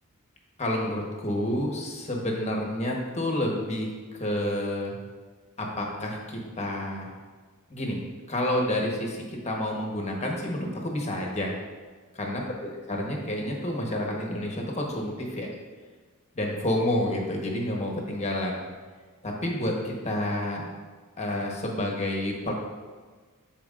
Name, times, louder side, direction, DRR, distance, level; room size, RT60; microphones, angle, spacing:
voice 1, 0.6-3.9 4.2-5.0 5.6-7.1 7.7-8.0 8.3-11.5 12.2-15.5 16.3-18.7 19.2-20.6 21.2-22.5, left 1 dB, 30° left, 0 dB, 1.1 m, -29 dB
12.5 x 4.4 x 2.5 m, 1.4 s
head